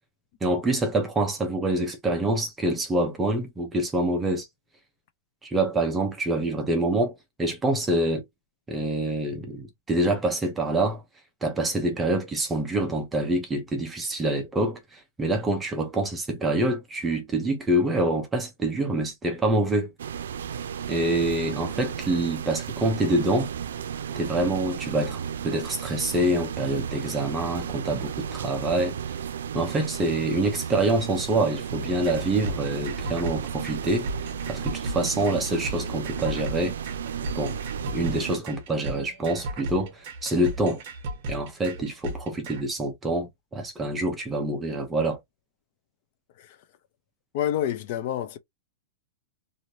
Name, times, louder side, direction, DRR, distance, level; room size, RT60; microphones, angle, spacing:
voice 1, 0.4-4.5 5.4-8.2 8.7-11.0 11.4-19.9 20.9-23.5 24.2-29.0 29.5-34.1 34.5-36.7 37.3-37.6 37.9-40.8 41.3-45.2, right 1 dB, 10° right, 0.6 m, -26 dB
sound 1, 20.0-38.4, right 8 dB, 90° right, 0.4 m, -34 dB
sound 2, 31.7-42.6, right 1 dB, 40° right, 1.1 m, -35 dB
voice 2, 47.3-48.4, left 11 dB, 40° left, 0.6 m, -28 dB
3.1 x 2.6 x 2.7 m
supercardioid pair, 170°, 0 cm